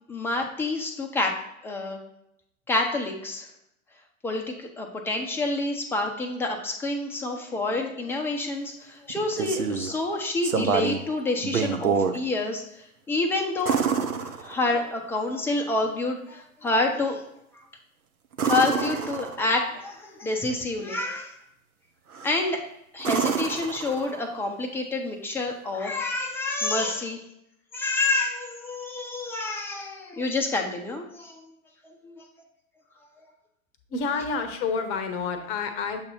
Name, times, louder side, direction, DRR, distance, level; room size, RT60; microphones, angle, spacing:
voice 1, 0.1-1.4 1.6-2.0 2.7-3.5 4.2-12.6 13.1-17.2 18.4-21.3 22.2-22.6 22.9-27.2 27.7-31.5 32.0-32.3, left 2 dB, 5° left, 2 dB, 0.5 m, -28 dB
sound 1, 9.1-9.9 10.4-11.1 11.4-12.2 13.6-14.9 18.3-19.6 22.1-22.5 23.0-24.4 26.5-26.6, right 6 dB, 85° right, 0.7 m, -27 dB
voice 2, 33.9-36.0, left 5 dB, 30° left, 7 dB, 0.8 m, -29 dB
7.1 x 2.7 x 5.4 m, 0.79 s
figure-of-eight pair, 105°, 43 cm